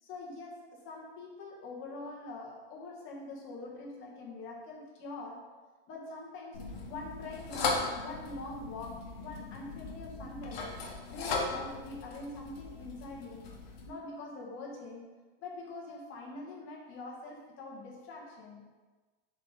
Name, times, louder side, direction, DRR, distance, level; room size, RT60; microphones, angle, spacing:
voice 1, 0.0-5.4 5.9-10.7 11.1-13.5 13.8-15.1 15.4-18.6, left 2 dB, 40° left, -2 dB, 1.7 m, -44 dB
sound 1, 6.5-13.9, left 3 dB, 75° left, 1.4 m, -38 dB
7.2 x 3.9 x 4.0 m, 1.3 s
supercardioid pair, 130°, 31 cm